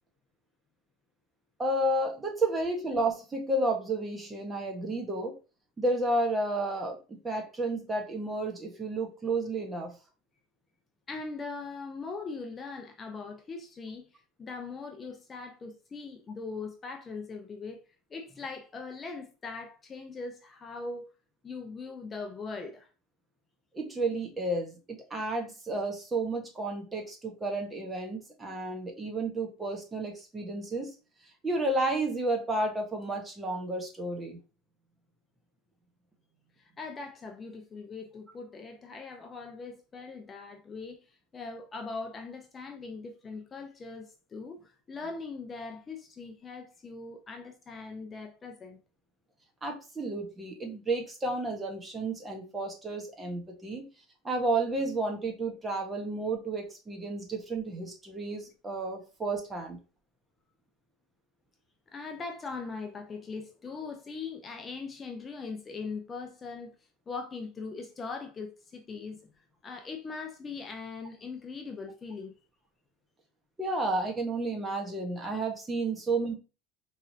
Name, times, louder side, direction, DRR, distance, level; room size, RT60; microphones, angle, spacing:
voice 1, 1.6-5.4 5.8-9.9 23.7-30.9 31.4-34.4 49.6-53.9 54.2-59.8 73.6-76.3, right 2 dB, 20° right, 1.4 m, -31 dB
voice 2, 11.1-17.8 18.1-21.1 21.4-22.9 36.6-48.8 61.9-66.8 67.1-69.2 69.6-72.3, left 4 dB, 25° left, 0.6 m, -40 dB
4.7 x 3.2 x 2.8 m
supercardioid pair, 105°, 0 cm